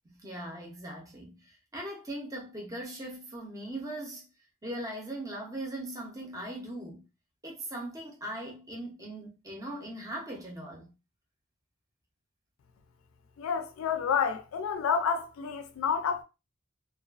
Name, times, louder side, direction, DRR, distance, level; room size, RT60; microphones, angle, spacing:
voice 1, 0.0-4.3 4.6-7.0 7.4-10.9, right 1 dB, 15° right, 0.6 m, -40 dB
voice 2, 13.4-16.2, left 6 dB, 70° left, 0.4 m, -29 dB
2.3 x 2.3 x 2.3 m
head